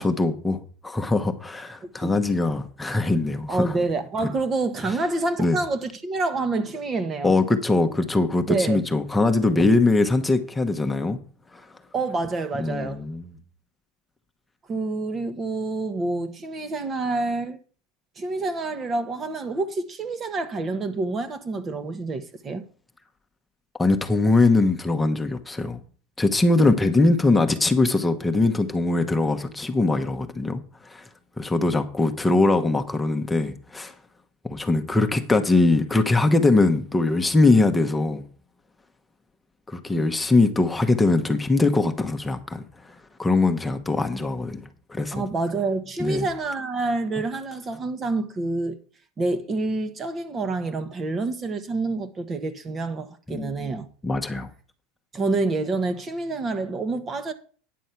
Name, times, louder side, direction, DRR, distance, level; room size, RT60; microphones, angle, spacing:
voice 1, 0.0-3.7 5.4-5.6 7.2-11.2 11.5-11.6 12.6-13.3 23.8-25.8 26.2-31.1 31.4-33.9 34.4-38.2 39.7-45.2 46.0-46.3 53.3-53.7 54.0-54.5, left 2 dB, 10° left, 1.0 m, -22 dB
voice 2, 1.8-2.2 3.5-7.3 8.5-8.8 11.9-13.1 14.7-17.6 18.2-22.6 39.9-40.1 45.1-48.8 49.2-53.9 55.1-57.3, right 3 dB, 30° right, 1.1 m, -27 dB
9.4 x 6.2 x 5.8 m
supercardioid pair, 110°, 0 cm